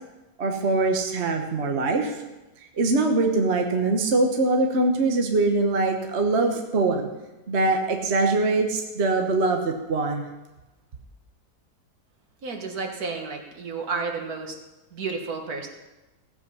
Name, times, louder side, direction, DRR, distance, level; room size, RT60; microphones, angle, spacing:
voice 1, 0.4-2.2 2.8-7.1 7.5-10.2, right 3 dB, 45° right, 3 dB, 1.3 m, -23 dB
voice 2, 12.4-14.6 14.9-15.7, right 4 dB, 65° right, 3 dB, 1.9 m, -31 dB
16.0 x 8.1 x 5.5 m, 1.1 s
omnidirectional pair, 1.7 m